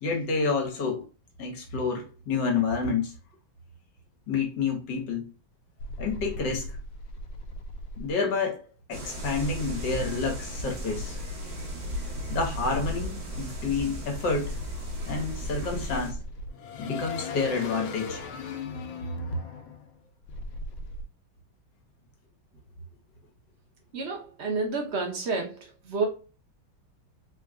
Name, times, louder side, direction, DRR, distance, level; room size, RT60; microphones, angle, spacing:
voice 1, 0.0-1.0 1.4-3.1 4.3-5.3 6.0-6.7 8.0-8.6 8.9-11.2 12.3-14.5 15.1-16.2 16.8-18.2, left 4 dB, 60° left, 1.6 m, -29 dB
sound 1, 5.8-8.1 9.2-11.7 12.3-21.0, left 2 dB, 80° left, 1.3 m, -38 dB
sound 2, 8.9-16.1, equal, 60° right, 1.4 m, -36 dB
voice 2, 23.9-25.6 25.8-26.1, right 3 dB, 80° right, 0.5 m, -29 dB
3.8 x 2.2 x 3.6 m
omnidirectional pair, 2.2 m